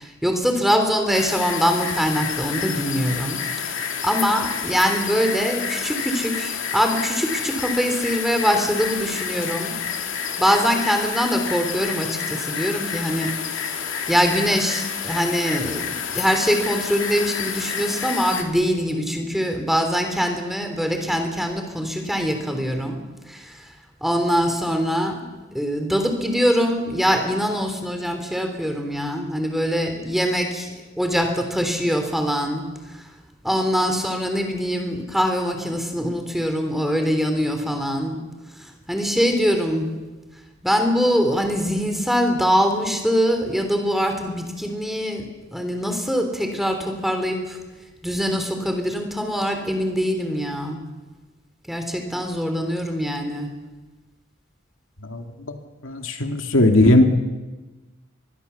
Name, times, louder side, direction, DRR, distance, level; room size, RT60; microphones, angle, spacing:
voice 1, 0.0-9.7 10.4-13.3 14.1-23.0 23.3-23.5 24.0-25.2 25.5-32.7 33.4-38.2 38.9-39.9 40.6-45.3 45.5-47.6 48.0-50.8 51.7-53.5, equal, ahead, 5 dB, 3.3 m, -23 dB
sound 1, 1.1-18.4, left 7 dB, 70° left, 2.6 m, -29 dB
voice 2, 55.8-57.1, left 1 dB, 90° left, 4 dB, 2.5 m, -17 dB
24.0 x 22.5 x 7.1 m, 1.2 s
head